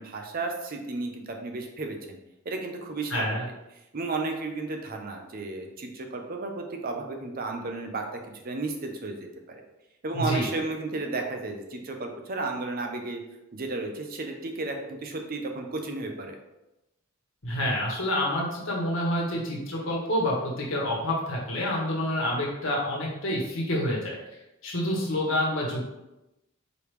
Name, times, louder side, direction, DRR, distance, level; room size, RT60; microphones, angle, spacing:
voice 1, 0.0-2.2 2.5-3.4 3.9-8.0 8.3-9.2 9.5-9.6 10.0-13.2 13.5-16.4, right 3 dB, 45° right, 3 dB, 0.6 m, -33 dB
voice 2, 3.1-3.5 10.1-10.5 17.4-24.2 24.6-25.9, left 1 dB, 65° left, -3 dB, 1.3 m, -28 dB
4.9 x 3.3 x 3.2 m, 0.94 s
head